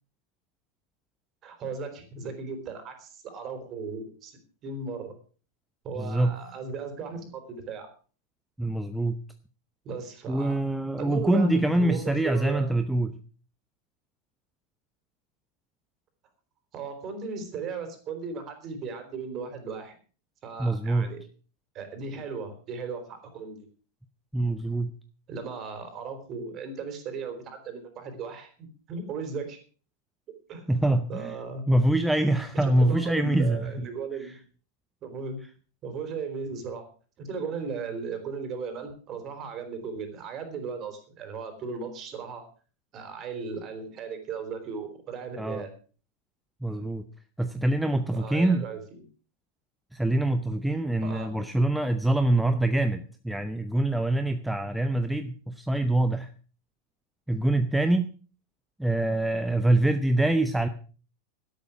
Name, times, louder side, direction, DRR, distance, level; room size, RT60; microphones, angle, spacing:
voice 1, 1.4-5.1 5.8-7.9 9.8-10.6 11.0-12.7 16.7-19.9 20.4-21.2 21.7-23.6 25.3-29.6 30.5-30.7 31.1-31.6 32.6-34.4 35.0-35.4 35.8-36.9 37.2-42.4 42.9-45.7 48.1-48.8 51.0-51.3, right 5 dB, 30° right, 7 dB, 4.2 m, -36 dB
voice 2, 6.0-6.4 8.6-9.2 10.3-13.2 20.6-21.1 24.3-24.9 30.7-31.4 31.7-33.9 34.2-34.3 45.4-45.7 46.6-47.0 47.4-48.6 49.9-56.3 57.3-58.1 58.8-60.7, right 1 dB, 5° right, 9 dB, 0.9 m, -25 dB
12.5 x 12.0 x 6.1 m, 0.39 s
figure-of-eight pair, 90°, 0 cm